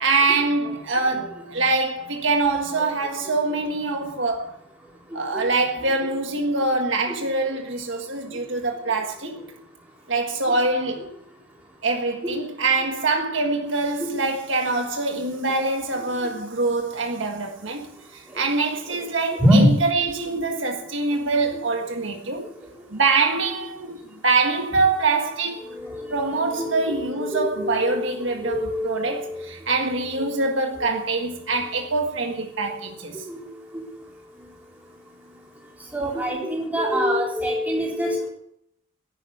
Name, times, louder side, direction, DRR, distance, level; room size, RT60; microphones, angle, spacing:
voice 1, 0.0-4.5 5.1-9.4 10.1-11.1 11.8-17.9 18.1-22.5 22.9-25.7 26.1-33.2, right 3 dB, 65° right, 1.6 m, -24 dB
voice 2, 3.2-3.6 5.3-5.5 5.8-6.1 7.1-7.5 9.2-9.4 10.5-10.6 11.0-11.1 12.2-12.4 14.0-14.1 16.0-16.3 18.3-18.4 18.9-19.7 20.0-20.3 21.5-21.6 25.6-29.5 30.2-30.4 30.8-31.2 32.5-32.8 33.3-33.5 33.7-33.8 35.9-38.3, equal, 10° right, 4.1 m, -26 dB
11.5 x 9.9 x 8.5 m
head